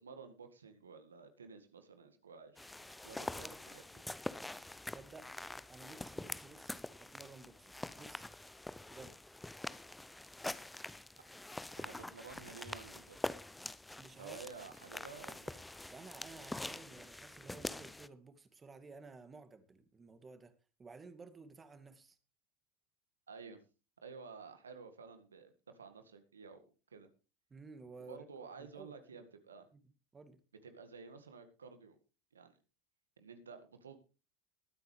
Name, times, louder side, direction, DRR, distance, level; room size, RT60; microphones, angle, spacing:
voice 1, 0.0-2.7 3.0-3.4 3.7-4.0 11.8-13.2 14.2-15.6 23.3-23.6 24.0-26.6 26.9-27.1 28.0-29.7 30.6-32.0 32.3-32.5 33.2-34.0, right 5 dB, 85° right, 8 dB, 1.8 m, -52 dB
sound 1, 2.6-18.1, left 2 dB, 10° left, 0.7 m, -45 dB
voice 2, 3.1-3.6 4.9-5.3 5.7-8.3 8.9-9.2 14.0-14.4 15.9-20.5 20.8-22.2 27.5-28.2 28.6-29.2 29.7-29.8 30.1-30.4, right 4 dB, 20° right, 10 dB, 2.2 m, -54 dB
21.0 x 9.4 x 3.3 m, 0.33 s
hypercardioid pair, 80°, 0 cm